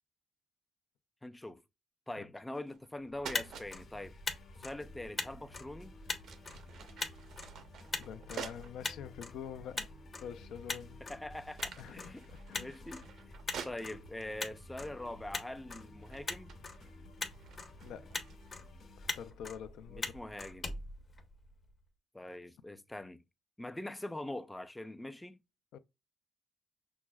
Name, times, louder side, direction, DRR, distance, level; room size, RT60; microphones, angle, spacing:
voice 1, 1.2-1.6 2.1-4.1 4.6-6.0 11.1-13.1 13.6-16.6 19.9-20.7 22.1-23.2 23.6-25.4, left 1 dB, 10° left, 0.4 m, -43 dB
sound 1, 2.5-2.9 3.2-3.7 5.3-5.5 6.0-8.8 9.4-9.5 10.3-10.8 11.1-14.3 15.1-15.4 15.7-18.7, right 7 dB, 75° right, 0.6 m, -49 dB
Motor vehicle (road), 3.1-21.7, left 3 dB, 40° left, 0.8 m, -43 dB
sound 2, 3.3-19.3, left 2 dB, 60° left, 1.1 m, -57 dB
voice 2, 8.0-9.9 10.2-11.0 11.8-12.8 17.8-18.2 19.0-20.1 25.7-25.8, left 8 dB, 80° left, 0.4 m, -46 dB
5.9 x 2.0 x 2.2 m
cardioid pair, 90°, 0 cm